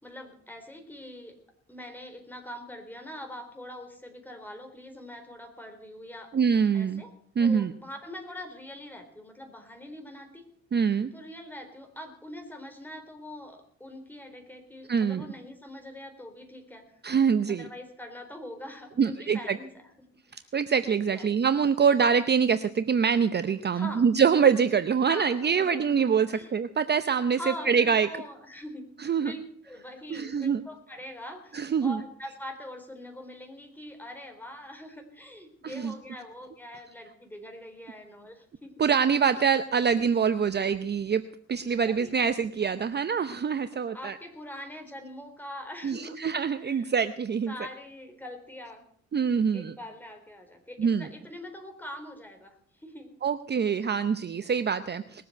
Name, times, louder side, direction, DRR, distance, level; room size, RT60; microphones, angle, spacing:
voice 1, 0.0-1.4 1.7-6.3 6.7-7.1 7.4-10.4 11.1-17.0 17.5-19.9 20.3-20.5 21.1-21.3 23.7-24.1 25.1-26.0 26.3-26.5 27.3-28.8 29.2-38.8 41.8-42.2 43.9-46.9 47.5-48.9 49.5-53.1, left 1 dB, 5° left, 4 dB, 4.0 m, -43 dB
voice 2, 6.3-7.0 7.4-7.7 10.7-11.1 14.9-15.2 17.0-17.7 19.0-19.6 20.5-27.4 27.7-28.1 29.0-29.3 30.1-30.6 31.5-32.0 35.6-35.9 38.8-41.2 41.5-44.2 45.8-47.5 49.1-49.7 50.8-51.1 53.2-55.2, right 6 dB, 35° right, 12 dB, 0.7 m, -25 dB
20.5 x 7.8 x 7.9 m, 0.62 s
cardioid pair, 90°, 30 cm